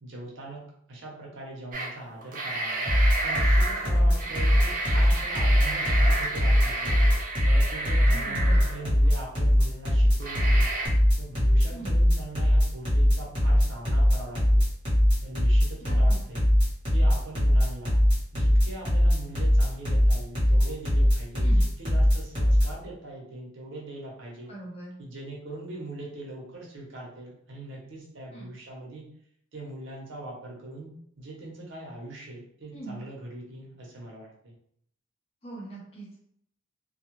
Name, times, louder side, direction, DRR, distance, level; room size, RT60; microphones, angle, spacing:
voice 1, 0.0-0.6 0.9-2.8 3.2-6.9 7.4-10.7 11.1-14.6 15.2-16.4 16.9-18.0 18.3-24.5 25.0-29.0 29.5-34.5, right 2 dB, 75° right, -3 dB, 0.8 m, -41 dB
sound 1, 1.7-1.9 2.2-9.1 9.6-9.7 10.2-10.9, right 2 dB, 45° right, 0.5 m, -31 dB
sound 2, 2.9-22.7, equal, 25° right, 1.0 m, -21 dB
voice 2, 8.1-8.6 11.7-12.0 15.8-16.2 21.4-21.6 24.5-25.0 28.3-28.5 32.7-33.0 35.4-36.2, right 2 dB, 30° left, -4 dB, 0.7 m, -41 dB
2.3 x 2.1 x 3.0 m, 0.68 s
head